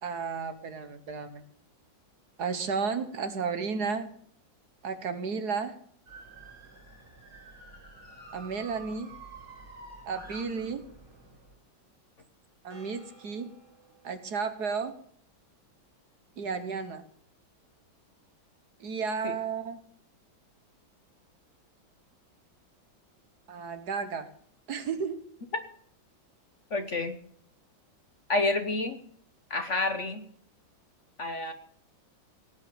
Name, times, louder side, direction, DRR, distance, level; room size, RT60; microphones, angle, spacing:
voice 1, 0.0-1.4 2.4-4.1 4.8-5.8 8.3-9.1 10.0-10.8 12.6-13.5 14.0-14.9 16.4-17.0 18.8-19.8 23.5-24.3 24.7-25.2, right 5 dB, 60° right, 10 dB, 1.6 m, -33 dB
sound 1, 6.1-11.6 12.7-14.3, right 3 dB, 40° right, 5.1 m, -50 dB
voice 2, 26.7-27.2 28.3-29.0 29.5-30.3 31.2-31.5, left 2 dB, 45° left, 8 dB, 1.2 m, -29 dB
17.5 x 9.1 x 6.9 m, 0.62 s
omnidirectional pair, 2.1 m